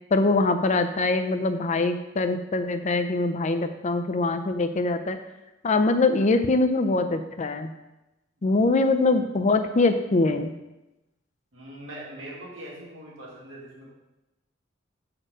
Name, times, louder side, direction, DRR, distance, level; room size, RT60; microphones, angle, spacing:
voice 1, 0.1-5.2 5.6-7.7 8.4-10.5, left 3 dB, 35° left, 8 dB, 0.5 m, -23 dB
voice 2, 11.5-13.9, right 1 dB, 75° right, -5 dB, 2.1 m, -41 dB
6.2 x 4.4 x 5.1 m, 0.98 s
head